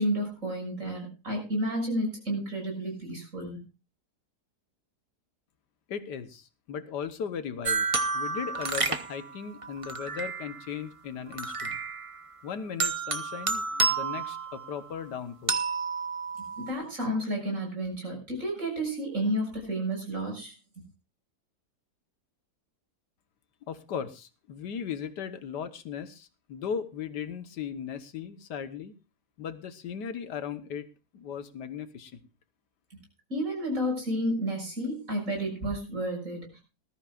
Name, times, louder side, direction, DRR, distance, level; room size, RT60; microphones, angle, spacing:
voice 1, 0.0-3.6 16.6-20.5 33.3-36.6, equal, 50° right, 2 dB, 6.7 m, -31 dB
voice 2, 5.9-7.9 8.1-11.8 12.4-15.6 23.7-28.9 29.4-30.9 31.1-32.3, left 7 dB, 80° left, 11 dB, 1.7 m, -37 dB
sound 1, 7.6-10.7 11.3-12.3 12.8-15.0 15.5-16.7, right 4 dB, 25° right, 0.7 m, -31 dB
19.5 x 13.5 x 2.4 m, 0.29 s
omnidirectional pair, 1.8 m